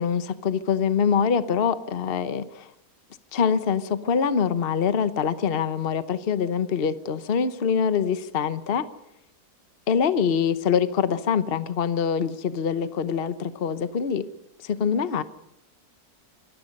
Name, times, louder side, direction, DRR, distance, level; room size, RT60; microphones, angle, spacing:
voice 1, 0.0-2.7 3.3-8.9 9.9-14.3 14.6-15.2, left 7 dB, 40° left, 12 dB, 1.1 m, -24 dB
25.0 x 21.5 x 5.4 m, 0.83 s
omnidirectional pair, 1.8 m